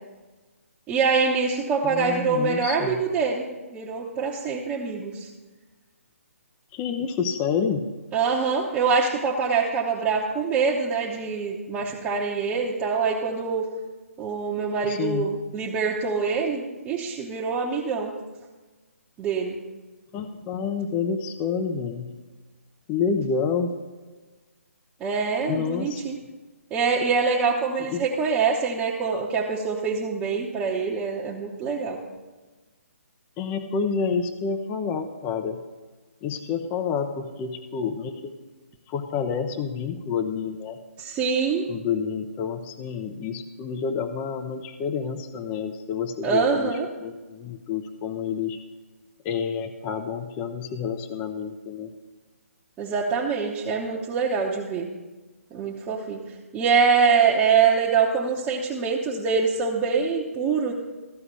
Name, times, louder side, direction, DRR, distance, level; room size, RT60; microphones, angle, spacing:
voice 1, 0.9-5.3 8.1-13.7 14.2-18.1 19.2-19.6 25.0-26.2 26.7-32.0 41.0-41.7 46.2-46.9 52.8-54.9 55.5-56.2 56.5-60.7, right 5 dB, 15° right, -4 dB, 1.0 m, -24 dB
voice 2, 1.8-3.0 6.7-7.9 14.8-15.3 20.1-22.1 22.9-23.7 25.5-26.0 27.9-28.0 33.4-35.6 36.2-38.3 38.9-40.8 41.7-48.6 49.2-51.9, left 6 dB, 20° left, 8 dB, 0.6 m, -29 dB
14.5 x 4.9 x 8.1 m, 1.3 s
figure-of-eight pair, 145°, 8 cm